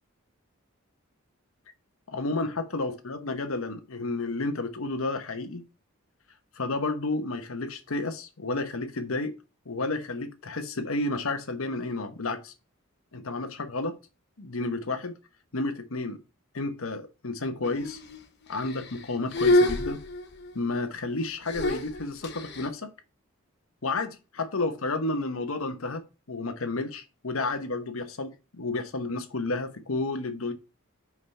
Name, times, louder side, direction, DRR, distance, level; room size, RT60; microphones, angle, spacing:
voice 1, 2.1-5.6 6.6-9.4 9.7-12.5 13.1-14.0 14.4-15.2 15.5-16.2 16.5-18.0 18.5-20.0 20.5-22.9 23.8-26.0 26.3-30.5, left 2 dB, 80° left, 1.0 m, -31 dB
sound 1, 17.6-18.2 18.6-19.0 19.3-20.5 21.5-22.7, left 1 dB, 55° left, 1.1 m, -27 dB
5.6 x 4.8 x 5.5 m
head